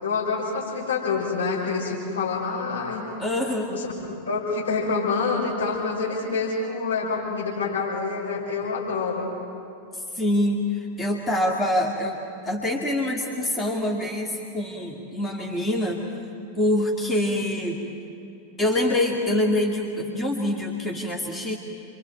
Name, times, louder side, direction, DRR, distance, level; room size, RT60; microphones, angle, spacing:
voice 1, 0.0-3.1 3.7-3.9 4.3-9.3, left 4 dB, 70° left, -3 dB, 6.1 m, -27 dB
voice 2, 3.2-3.7 10.1-12.2 12.4-16.0 16.6-17.8 18.6-21.6, left 1 dB, 15° left, 0 dB, 2.1 m, -25 dB
28.5 x 24.0 x 4.6 m, 2.7 s
figure-of-eight pair, 90°, 0 cm